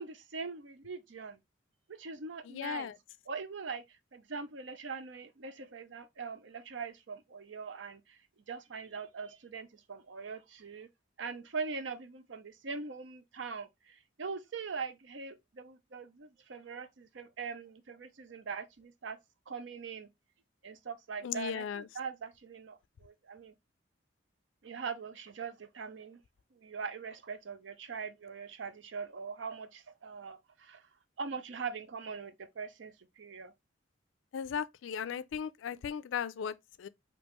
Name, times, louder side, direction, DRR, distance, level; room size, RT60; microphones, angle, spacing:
voice 1, 0.0-1.4 2.0-2.9 3.3-8.2 8.5-10.9 11.2-19.2 19.5-20.1 20.6-23.5 24.6-26.2 26.5-30.9 31.2-33.5, right 5 dB, 70° right, 0.6 m, -42 dB
voice 2, 2.5-2.9 21.2-21.8 34.3-36.9, left 7 dB, 80° left, 0.3 m, -37 dB
5.2 x 2.9 x 2.9 m
head